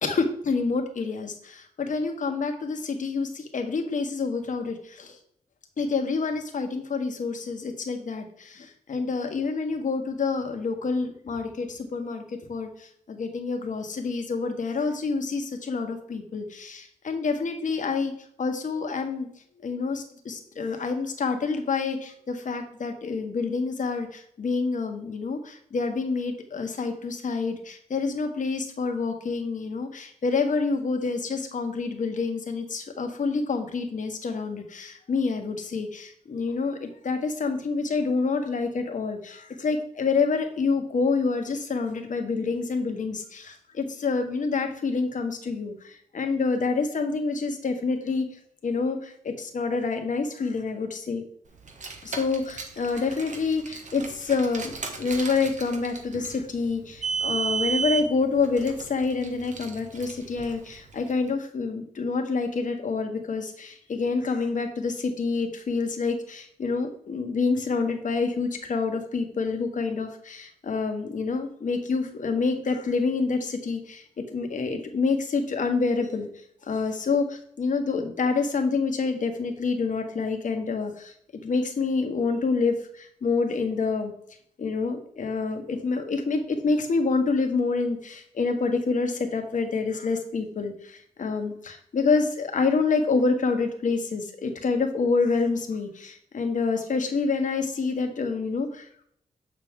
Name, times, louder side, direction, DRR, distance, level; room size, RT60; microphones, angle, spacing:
voice 1, 0.0-5.2 5.8-18.1 18.4-19.3 19.6-48.3 48.6-51.2 52.0-76.3 76.6-81.1 81.4-84.1 84.6-99.0, left 4 dB, 60° left, 5 dB, 1.3 m, -27 dB
Car, 51.6-61.1, right 5 dB, 55° right, 1.4 m, -34 dB
6.6 x 6.2 x 3.6 m, 0.66 s
supercardioid pair, 45°, 15 cm